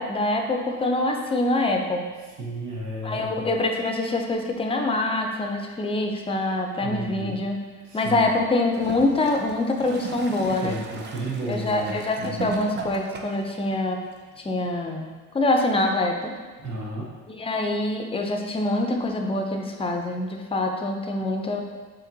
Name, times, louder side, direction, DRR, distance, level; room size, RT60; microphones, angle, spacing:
voice 1, 0.0-2.1 3.0-7.6 7.9-10.8 11.5-14.0 14.4-15.1 15.3-16.3 17.3-21.6, left 2 dB, 20° left, 3 dB, 0.5 m, -25 dB
voice 2, 2.4-3.5 6.8-7.4 7.8-8.3 10.6-12.5 16.6-17.1, right 1 dB, 80° right, -4 dB, 1.0 m, -33 dB
Gurgling / Toilet flush, 8.6-13.5 14.4-14.5, right 4 dB, 35° right, 0.5 m, -36 dB
4.9 x 2.9 x 2.7 m, 1.4 s
cardioid pair, 90°, 30 cm